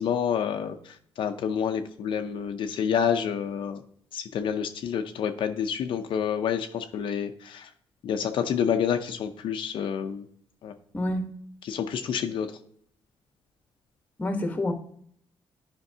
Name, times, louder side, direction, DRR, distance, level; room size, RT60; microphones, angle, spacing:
voice 1, 0.0-3.8 4.1-7.7 8.0-10.2 10.6-10.7 11.6-12.5, left 8 dB, 70° left, 6 dB, 0.6 m, -28 dB
voice 2, 10.9-11.3 14.2-14.7, left 1 dB, 15° left, 5 dB, 1.1 m, -27 dB
10.5 x 5.2 x 2.7 m, 0.65 s
cardioid pair, 135°, 9 cm